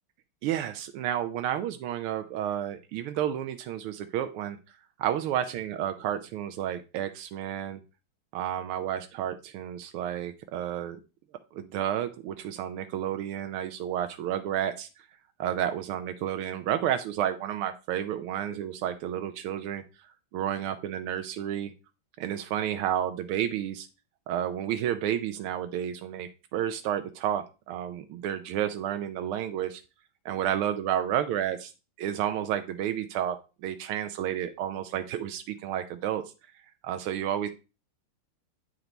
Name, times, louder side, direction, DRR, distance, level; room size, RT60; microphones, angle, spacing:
voice 1, 0.4-4.6 5.0-7.8 8.3-11.0 11.5-14.9 15.4-21.7 22.2-23.9 24.3-29.8 30.2-31.7 32.0-36.2 36.8-37.5, right 10 dB, 90° right, 8 dB, 1.6 m, -31 dB
8.7 x 4.6 x 3.9 m, 0.31 s
omnidirectional pair, 2.3 m